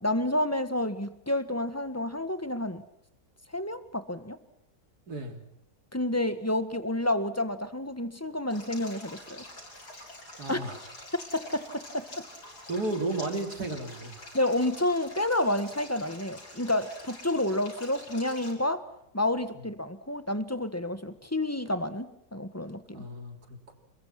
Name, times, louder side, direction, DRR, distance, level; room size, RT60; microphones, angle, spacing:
voice 1, 0.0-2.8 3.5-4.4 5.9-9.5 10.5-10.6 11.3-12.2 14.3-18.8 19.1-23.1, left 1 dB, 10° left, 12 dB, 1.5 m, -29 dB
voice 2, 5.1-5.4 10.4-10.8 12.7-14.3 22.9-23.7, right 2 dB, 75° right, 5 dB, 4.1 m, -33 dB
Stream, 8.5-18.5, left 1 dB, 85° left, 7.3 m, -46 dB
30.0 x 21.5 x 6.0 m, 0.78 s
omnidirectional pair, 1.7 m